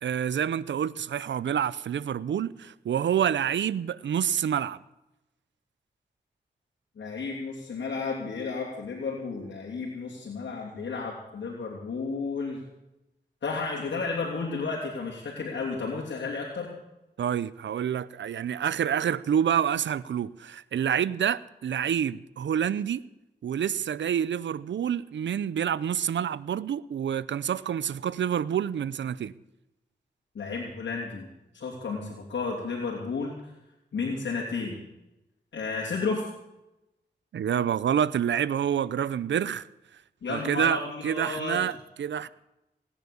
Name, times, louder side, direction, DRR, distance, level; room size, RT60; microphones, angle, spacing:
voice 1, 0.0-4.8 17.2-23.0 23.4-29.3 37.3-39.7 40.3-42.3, right 9 dB, 85° right, 0.6 m, -28 dB
voice 2, 7.0-12.6 13.4-16.7 30.3-31.3 31.5-33.5 33.9-34.8 35.5-36.2 40.2-41.7, left 4 dB, 80° left, 3.0 m, -32 dB
18.5 x 10.0 x 7.0 m
cardioid pair, 50°, 18 cm